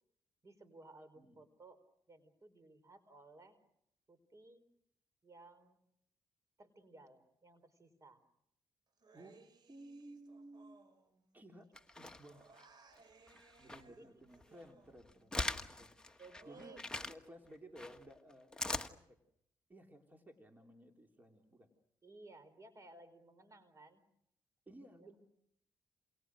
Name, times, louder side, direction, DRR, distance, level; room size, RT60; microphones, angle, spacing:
voice 1, 0.4-3.6 4.1-4.6 5.2-5.8 6.6-8.2 13.9-14.1 16.2-16.8 22.0-24.1 25.0-25.1, right 2 dB, 40° right, 14 dB, 4.6 m, -58 dB
Human voice, 9.0-11.6 11.9-15.4 15.7-16.8, right 4 dB, 60° right, 4.0 m, -65 dB
voice 2, 9.1-10.8 11.3-12.5 13.6-16.8 17.1-19.2 19.7-21.7 24.7-25.2, right 1 dB, 20° right, 3 dB, 3.7 m, -57 dB
sound 1, 11.8-12.6 13.3-13.9 14.3-17.1 17.8-18.9, left 2 dB, 10° left, 1.5 m, -41 dB
28.5 x 28.5 x 6.4 m, 0.75 s
cardioid pair, 70°, 8 cm